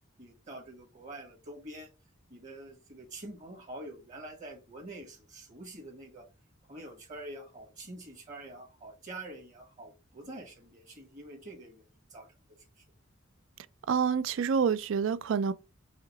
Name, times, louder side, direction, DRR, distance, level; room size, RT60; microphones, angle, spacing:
voice 1, 0.2-1.9 2.3-6.2 6.7-11.8 12.1-12.3, right 1 dB, 40° right, 1.2 m, -46 dB
voice 2, 13.9-15.5, right 6 dB, 70° right, 0.4 m, -27 dB
4.9 x 3.0 x 2.9 m
head